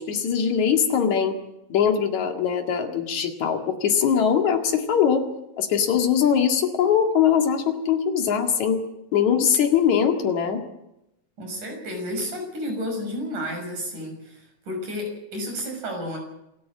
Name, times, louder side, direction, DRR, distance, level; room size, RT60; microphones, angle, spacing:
voice 1, 0.0-1.4 1.7-5.2 5.6-8.8 9.1-10.6, left 8 dB, 70° left, 4 dB, 3.4 m, -21 dB
voice 2, 11.4-16.2, equal, 85° right, 3 dB, 7.8 m, -31 dB
27.0 x 13.5 x 8.6 m, 0.88 s
omnidirectional pair, 3.5 m